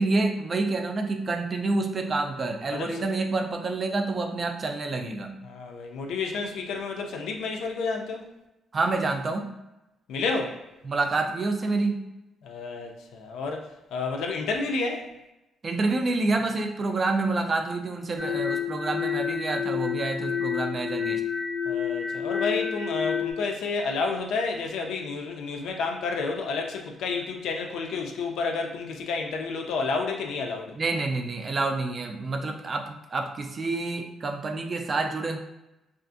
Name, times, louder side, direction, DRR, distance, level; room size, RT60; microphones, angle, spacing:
voice 1, 0.0-5.4 8.7-9.5 10.8-12.1 15.6-21.2 30.8-35.4, right 3 dB, 40° right, 5 dB, 0.3 m, -28 dB
voice 2, 2.7-3.0 5.4-8.2 10.1-10.6 12.4-15.1 21.7-30.7, left 4 dB, 80° left, 2 dB, 0.4 m, -30 dB
sound 1, 18.2-23.3, left 7 dB, 5° left, 0.7 m, -29 dB
2.5 x 2.4 x 2.5 m, 0.94 s
cardioid pair, 90°, 0 cm